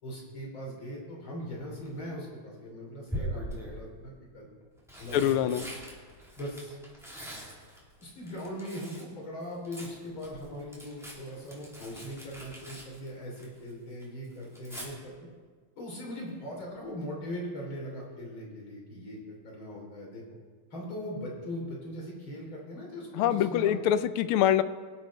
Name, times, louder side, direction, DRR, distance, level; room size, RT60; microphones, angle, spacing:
voice 1, 0.0-4.5 5.0-5.6 6.4-6.8 8.0-15.1 15.8-20.2 20.7-23.8, equal, 65° left, -2 dB, 4.1 m, -40 dB
Tearing, 1.6-2.0 3.1-3.8 4.6-9.1 9.4-13.7 14.0-14.9 16.7-17.0 17.3-17.4, equal, ahead, 3.1 m, -42 dB
voice 2, 5.1-5.6 23.2-24.6, left 10 dB, 80° left, 13 dB, 1.5 m, -24 dB
23.5 x 8.1 x 4.2 m, 1.5 s
omnidirectional pair, 2.4 m